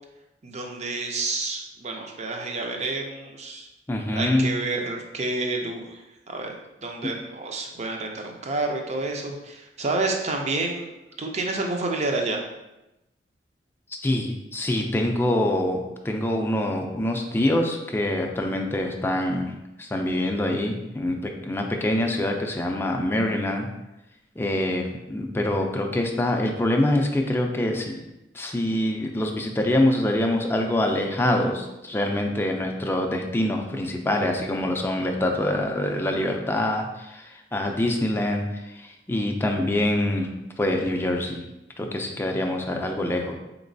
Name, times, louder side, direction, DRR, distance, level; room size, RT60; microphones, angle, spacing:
voice 1, 0.4-3.7 4.1-6.0 6.3-10.9 11.2-12.4, right 2 dB, 40° right, 2 dB, 0.5 m, -29 dB
voice 2, 3.9-4.5 14.0-19.5 19.8-23.7 24.4-28.0 28.3-38.5 38.8-40.3 40.6-41.4 41.8-43.4, left 1 dB, 15° left, 2 dB, 0.4 m, -25 dB
4.2 x 3.0 x 2.6 m, 0.94 s
head